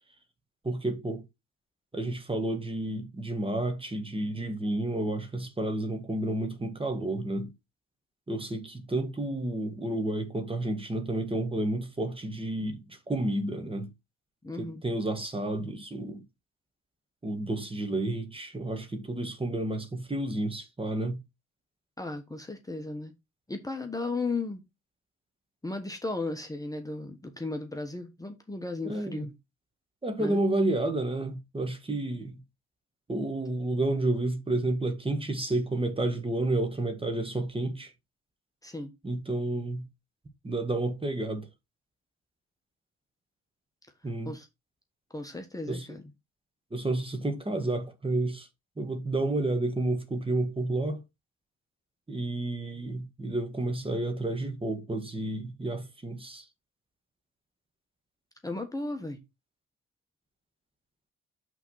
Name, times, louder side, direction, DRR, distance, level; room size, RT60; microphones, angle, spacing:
voice 1, 0.6-1.2 1.9-7.5 8.3-13.9 14.6-16.2 17.2-21.2 28.8-29.2 30.0-32.4 33.1-37.9 39.0-39.9 40.4-41.5 44.0-44.3 45.7-45.9 46.7-48.5 48.8-51.0 52.1-56.4, right 2 dB, 20° right, 1.7 m, -30 dB
voice 2, 14.4-14.8 22.0-23.1 23.5-24.6 25.6-29.3 30.2-30.4 38.6-38.9 44.2-44.5 45.1-46.0 58.4-59.2, left 3 dB, 10° left, 1.2 m, -35 dB
5.9 x 3.7 x 5.6 m
cardioid pair, 90°, 30 cm